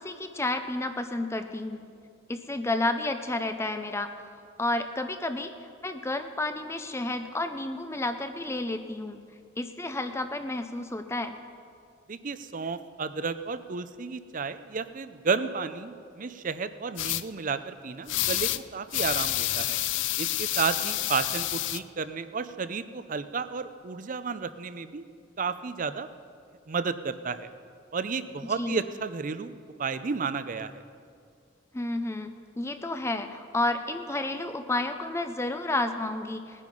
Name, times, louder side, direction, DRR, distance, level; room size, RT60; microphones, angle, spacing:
voice 1, 0.0-1.8 2.3-4.1 4.6-5.5 5.8-9.2 9.6-11.3 28.6-28.8 31.7-32.3 32.5-36.6, left 2 dB, 15° left, 8 dB, 0.6 m, -31 dB
voice 2, 12.1-19.8 20.2-25.0 25.4-26.1 26.7-27.5 27.9-29.5 29.8-30.8, right 5 dB, 45° right, 12 dB, 0.6 m, -32 dB
sound 1, 17.0-17.2 18.1-18.6 18.9-21.8, left 15 dB, 75° left, 0.4 m, -28 dB
19.0 x 9.9 x 5.4 m, 2.3 s
head